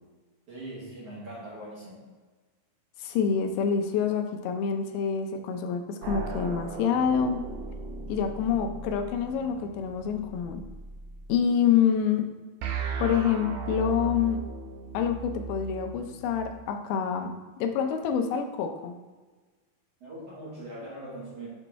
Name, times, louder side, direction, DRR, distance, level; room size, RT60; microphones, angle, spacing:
voice 1, 0.5-2.0 20.0-21.5, right 1 dB, 60° right, -7 dB, 1.7 m, -41 dB
voice 2, 3.0-7.4 8.1-10.6 11.3-12.3 13.0-14.4 14.9-19.0, left 7 dB, 85° left, 5 dB, 2.5 m, -27 dB
sound 1, 6.0-11.3 12.6-16.5, right 4 dB, 90° right, 1.7 m, -37 dB
7.1 x 3.0 x 4.5 m, 1.3 s
omnidirectional pair, 4.3 m